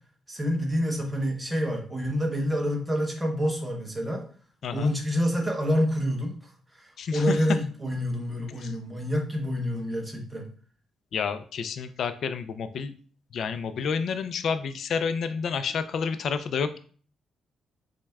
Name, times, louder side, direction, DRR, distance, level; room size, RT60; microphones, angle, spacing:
voice 1, 0.3-4.3 4.7-6.4 6.7-10.5, equal, 10° right, 1 dB, 0.9 m, -27 dB
voice 2, 4.6-5.0 7.0-7.4 8.6-8.7 11.1-12.9 13.3-16.8, left 6 dB, 65° left, 11 dB, 0.3 m, -29 dB
5.9 x 2.2 x 2.3 m, 0.43 s
cardioid pair, 90°, 0 cm